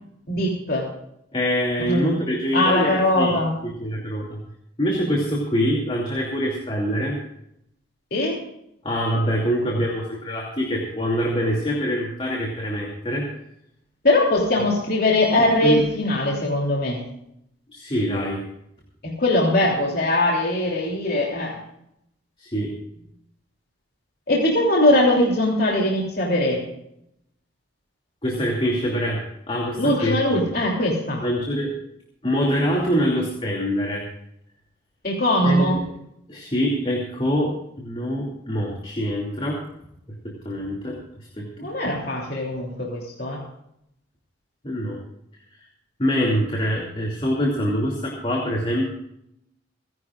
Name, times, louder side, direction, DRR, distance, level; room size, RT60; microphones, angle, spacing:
voice 1, 0.3-0.9 1.9-2.1 2.5-3.5 8.1-8.4 14.0-17.0 19.0-21.6 24.3-26.6 29.8-31.2 35.0-35.8 41.6-43.4, left 1 dB, 50° left, -2 dB, 3.1 m, -21 dB
voice 2, 1.3-3.3 3.6-4.4 4.8-7.2 8.8-13.3 15.6-15.8 17.7-18.4 22.4-22.7 28.2-30.2 31.2-31.7 32.2-34.1 35.4-35.8 36.3-39.6 40.2-41.7 44.6-45.0 46.0-48.9, equal, 25° left, -2 dB, 2.7 m, -24 dB
29.5 x 11.0 x 2.5 m, 0.76 s
head